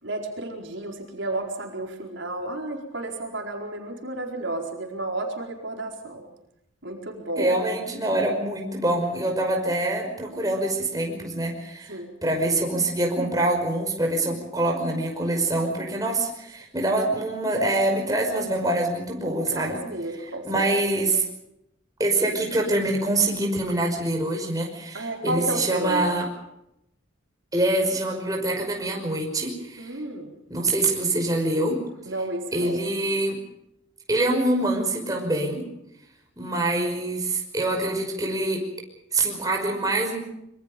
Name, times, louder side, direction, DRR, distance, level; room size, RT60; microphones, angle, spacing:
voice 1, 0.0-6.3 6.8-7.5 11.9-12.2 16.2-16.3 19.5-21.2 24.9-26.2 29.8-30.3 32.0-32.8, right 1 dB, 70° right, 2 dB, 4.5 m, -32 dB
voice 2, 7.4-19.8 20.4-21.2 22.0-26.3 27.5-30.0 30.5-31.8 32.5-33.4 34.1-35.6 36.4-38.6 39.1-40.2, right 2 dB, 20° right, 1 dB, 5.5 m, -25 dB
26.0 x 24.5 x 5.3 m, 0.82 s
head